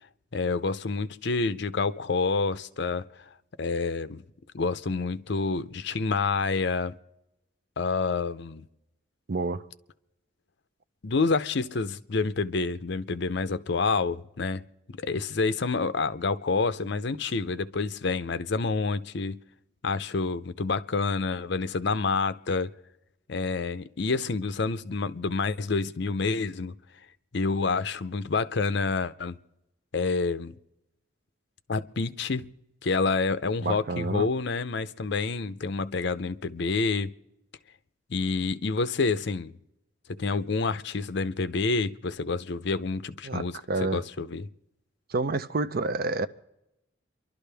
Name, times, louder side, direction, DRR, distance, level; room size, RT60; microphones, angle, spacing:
voice 1, 0.3-3.2 3.6-4.2 4.5-7.0 7.8-8.7 11.0-14.6 15.0-19.4 19.8-22.7 23.3-26.7 27.3-29.4 29.9-30.5 31.7-32.5 32.8-37.1 38.1-39.5 40.1-43.5 43.8-44.5, left 4 dB, 60° left, 0.6 m, -28 dB
voice 2, 9.3-9.6 33.6-34.3 43.2-44.0 45.1-46.3, right 3 dB, 50° right, 0.5 m, -29 dB
28.5 x 12.0 x 3.4 m
head